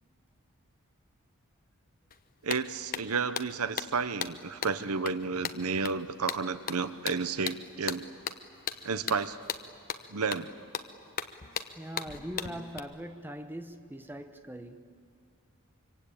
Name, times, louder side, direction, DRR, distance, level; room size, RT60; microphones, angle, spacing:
sound 1, 2.1-2.2 2.5-12.8, left 7 dB, 40° left, 1.0 m, -38 dB
voice 1, 2.4-8.1 8.8-9.4 10.1-10.5, right 4 dB, 75° right, 0.9 m, -31 dB
voice 2, 11.8-14.9, equal, 10° right, 1.1 m, -41 dB
25.0 x 25.0 x 8.7 m
head